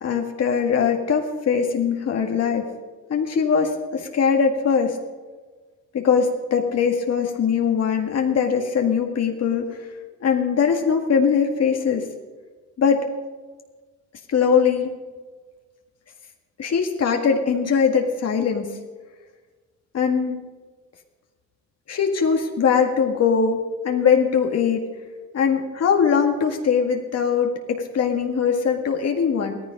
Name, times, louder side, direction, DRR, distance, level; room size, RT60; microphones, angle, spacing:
voice 1, 0.0-2.7 3.1-5.0 5.9-9.8 10.2-12.1 12.8-13.1 14.3-14.9 16.6-18.7 19.9-20.4 21.9-24.8 25.3-29.6, left 6 dB, 55° left, 3 dB, 1.9 m, -21 dB
16.5 x 14.0 x 5.3 m, 1.4 s
cardioid pair, 90°, 30 cm